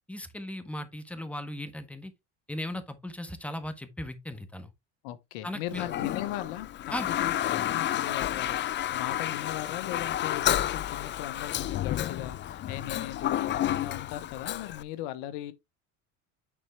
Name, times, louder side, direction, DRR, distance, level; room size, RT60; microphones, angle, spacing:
voice 1, 0.1-2.1 2.5-4.7 5.4-5.8 6.9-7.1, left 1 dB, 5° left, 1.4 m, -37 dB
voice 2, 5.0-15.5, left 13 dB, 75° left, 1.1 m, -38 dB
Toilet flush, 5.7-14.8, left 12 dB, 30° left, 0.4 m, -31 dB
9.8 x 4.4 x 3.4 m
supercardioid pair, 90°, 38 cm